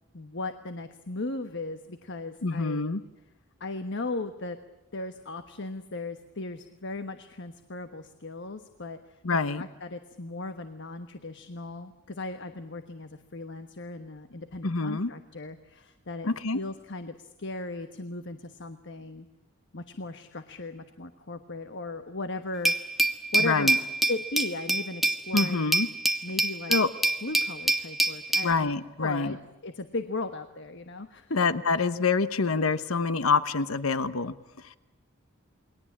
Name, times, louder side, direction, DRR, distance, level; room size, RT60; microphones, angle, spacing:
voice 1, 0.1-2.9 3.6-4.6 4.9-9.2 9.6-19.3 19.7-23.7 24.1-25.8 26.2-26.8 27.2-28.7 29.0-29.4 29.6-31.4 31.8-31.9, left 2 dB, 60° left, 9 dB, 1.3 m, -37 dB
voice 2, 2.4-3.0 9.2-9.6 14.6-15.1 16.2-16.6 23.4-23.8 25.3-25.9 26.7-26.9 28.4-29.3 31.4-34.3, left 4 dB, 85° left, 13 dB, 1.0 m, -26 dB
Glass, 22.6-28.5, right 2 dB, ahead, 1.5 m, -26 dB
29.0 x 22.0 x 8.7 m, 0.98 s
head